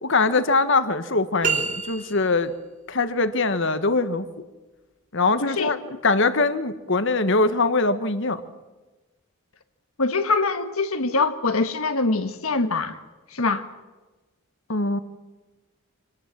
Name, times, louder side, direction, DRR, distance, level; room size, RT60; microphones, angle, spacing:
voice 1, 0.0-2.5 2.9-4.2 5.1-5.8 6.0-8.4 14.7-15.0, left 3 dB, 60° left, 11 dB, 1.4 m, -22 dB
sound 1, 1.4-2.5, right 6 dB, 35° right, 3.3 m, -27 dB
voice 2, 5.4-5.8 10.0-13.0 13.3-13.7, left 3 dB, 80° left, 8 dB, 1.4 m, -24 dB
26.5 x 19.0 x 7.5 m, 1.2 s
head